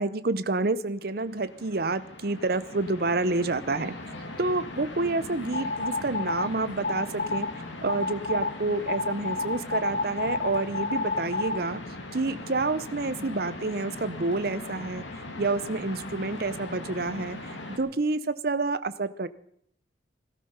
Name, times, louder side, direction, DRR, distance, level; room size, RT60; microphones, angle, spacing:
voice 1, 0.0-3.9 4.4-7.5 7.8-11.8 12.1-15.0 15.4-19.3, right 3 dB, 50° right, 14 dB, 0.7 m, -28 dB
sound 1, 1.0-17.8, left 2 dB, 75° left, 2.4 m, -40 dB
sound 2, 5.5-6.5 6.8-7.5 7.9-8.5 8.9-11.6, left 3 dB, 45° left, 0.9 m, -29 dB
17.5 x 12.5 x 5.6 m, 0.68 s
head